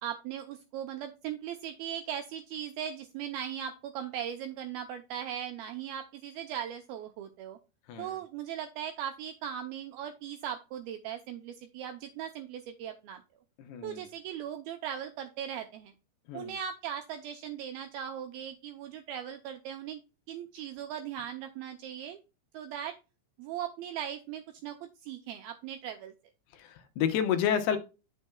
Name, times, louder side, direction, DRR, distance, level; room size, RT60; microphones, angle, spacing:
voice 1, 0.0-7.6 8.0-13.2 13.8-15.9 16.3-20.0 20.3-22.2 22.5-23.0 23.4-26.1, right 9 dB, 90° right, 2.1 m, -39 dB
voice 2, 13.6-14.0 16.3-16.5 26.5-27.8, left 8 dB, 75° left, 2.7 m, -30 dB
9.1 x 6.4 x 2.2 m
omnidirectional pair, 5.0 m